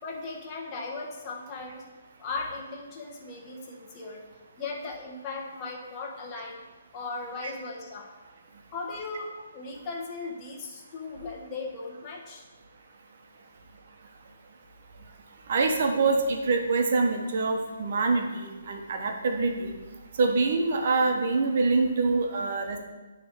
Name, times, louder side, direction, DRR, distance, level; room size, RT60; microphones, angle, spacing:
voice 1, 0.0-1.8 2.2-4.2 4.6-6.6 6.9-8.1 8.7-12.4, left 3 dB, 25° left, -2 dB, 1.4 m, -37 dB
voice 2, 15.5-19.7 20.2-22.8, right 3 dB, 50° right, 3 dB, 1.2 m, -25 dB
9.7 x 3.5 x 5.3 m, 1.2 s
figure-of-eight pair, 140°, 0 cm